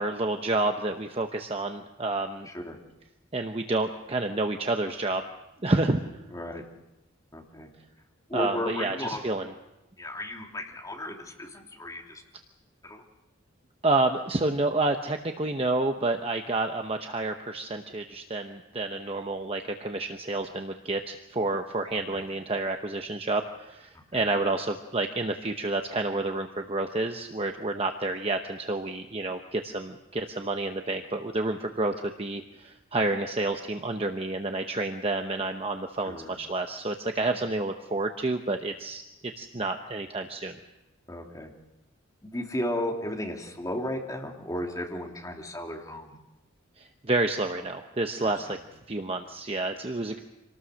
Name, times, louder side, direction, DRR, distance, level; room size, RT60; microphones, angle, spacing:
voice 1, 0.0-2.5 3.3-5.3 5.6-6.0 8.3-9.5 13.8-39.0 39.4-40.6 46.8-48.6 48.9-50.2, right 2 dB, 30° right, 5 dB, 0.9 m, -29 dB
voice 2, 2.5-2.8 6.3-6.6 7.3-7.7 8.3-9.2 10.0-12.2 12.8-13.0 22.1-22.2 24.1-24.2 36.0-36.4 41.1-41.5 42.2-46.2 48.2-48.6, left 1 dB, 15° left, 0 dB, 2.8 m, -34 dB
26.0 x 19.0 x 6.4 m, 0.94 s
head